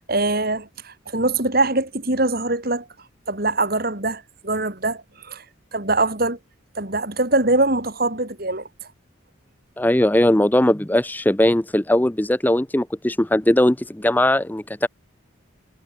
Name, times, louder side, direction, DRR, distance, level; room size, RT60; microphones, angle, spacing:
voice 1, 0.1-2.9 3.3-5.4 5.7-6.4 6.7-8.7, right 2 dB, 45° right, 3.1 m, -23 dB
voice 2, 9.8-14.9, left 1 dB, 10° left, 0.5 m, -19 dB
head